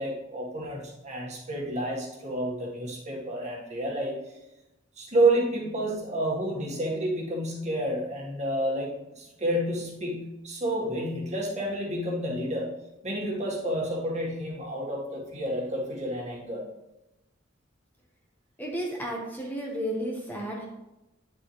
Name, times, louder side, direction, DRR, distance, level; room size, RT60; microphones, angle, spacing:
voice 1, 0.0-4.2 5.0-12.7 13.0-16.6, right 1 dB, 35° right, -2 dB, 1.7 m, -29 dB
voice 2, 18.6-20.7, equal, 10° left, -2 dB, 1.3 m, -32 dB
9.4 x 6.9 x 3.2 m, 0.96 s
head